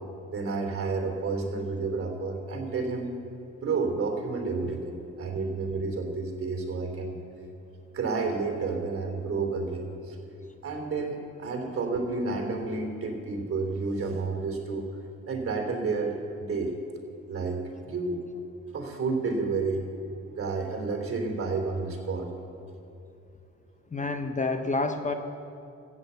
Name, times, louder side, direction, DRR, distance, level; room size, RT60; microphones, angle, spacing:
voice 1, 0.3-3.1 3.6-7.1 7.9-10.2 10.6-14.8 15.3-16.7 17.3-18.2 18.7-19.9 20.4-22.3, right 4 dB, 45° right, 3 dB, 2.9 m, -30 dB
voice 2, 23.9-25.1, left 3 dB, 25° left, 7 dB, 0.9 m, -28 dB
14.5 x 8.7 x 8.0 m, 2.6 s
cardioid pair, 90°, 30 cm